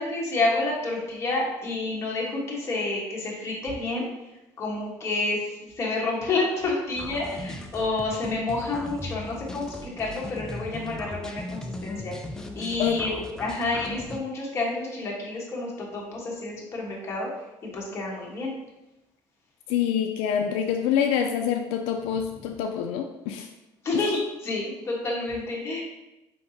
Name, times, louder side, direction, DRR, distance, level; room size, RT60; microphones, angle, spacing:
voice 1, 0.0-4.1 4.6-12.1 12.5-17.3 17.6-18.5 23.8-25.8, left 2 dB, 25° left, -3 dB, 1.2 m, -29 dB
sound 1, 7.0-14.2, left 1 dB, 5° left, 0.3 m, -38 dB
voice 2, 19.7-23.5 23.9-24.0, left 8 dB, 85° left, 4 dB, 0.4 m, -26 dB
4.7 x 3.4 x 2.7 m, 0.95 s
cardioid pair, 145°, 10 cm